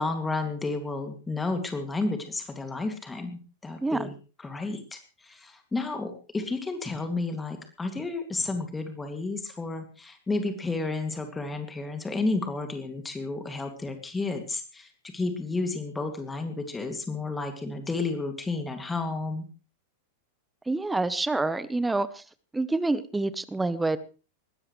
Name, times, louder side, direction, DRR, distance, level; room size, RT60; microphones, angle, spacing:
voice 1, 0.0-19.5, left 3 dB, 10° left, 6 dB, 2.4 m, -32 dB
voice 2, 20.7-22.2 22.5-24.0, right 2 dB, 10° right, 16 dB, 0.9 m, -27 dB
20.5 x 17.0 x 3.2 m, 0.34 s
figure-of-eight pair, 90°, 0 cm